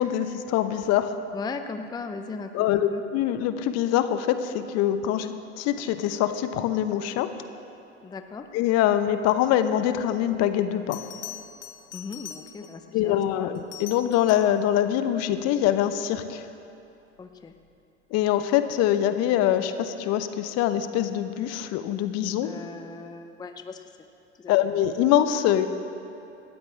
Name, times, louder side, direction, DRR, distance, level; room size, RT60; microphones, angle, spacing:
voice 1, 0.0-1.1 2.5-5.3 5.6-7.3 8.5-11.0 12.9-16.5 18.1-22.5 24.5-25.7, left 11 dB, 45° left, 10 dB, 0.8 m, -24 dB
voice 2, 1.3-3.0 5.1-5.3 8.0-8.5 11.9-13.5 17.2-17.5 22.4-23.9 24.4-24.7, left 4 dB, 10° left, 7 dB, 0.6 m, -38 dB
Bell, 10.9-12.9 13.5-14.6 17.3-17.6, left 10 dB, 75° left, 1.1 m, -42 dB
18.0 x 13.5 x 3.3 m, 2.6 s
hypercardioid pair, 85°, 35 cm